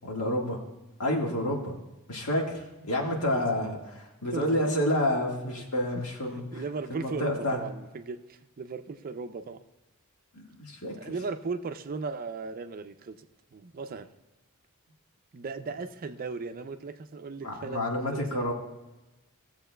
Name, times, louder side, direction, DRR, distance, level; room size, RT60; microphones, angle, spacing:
voice 1, 0.0-0.6 1.0-1.7 2.1-6.6 6.9-7.6 10.3-10.9 17.4-18.5, left 1 dB, 75° left, 0 dB, 1.7 m, -29 dB
voice 2, 3.3-3.8 4.3-4.7 5.5-5.6 6.3-9.6 11.0-14.1 15.3-18.5, right 4 dB, 40° right, 9 dB, 0.4 m, -37 dB
17.0 x 7.2 x 2.2 m, 1.0 s
head